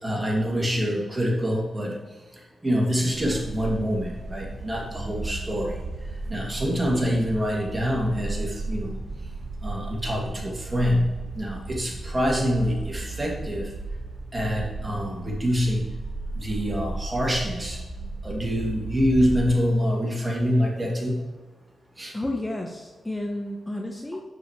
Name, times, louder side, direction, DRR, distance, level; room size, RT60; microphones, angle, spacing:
voice 1, 0.0-1.9 2.6-5.7 6.3-9.0 9.6-11.1 11.4-13.7 14.3-15.8 16.4-17.8 18.2-21.2 22.0-22.1, equal, 25° right, -1 dB, 2.6 m, -25 dB
sound 1, 3.1-19.5, right 2 dB, 55° right, 1.5 m, -35 dB
voice 2, 22.1-24.2, left 1 dB, 20° left, 2 dB, 1.0 m, -31 dB
9.3 x 6.7 x 3.3 m, 1.3 s
cardioid pair, 50°, 0 cm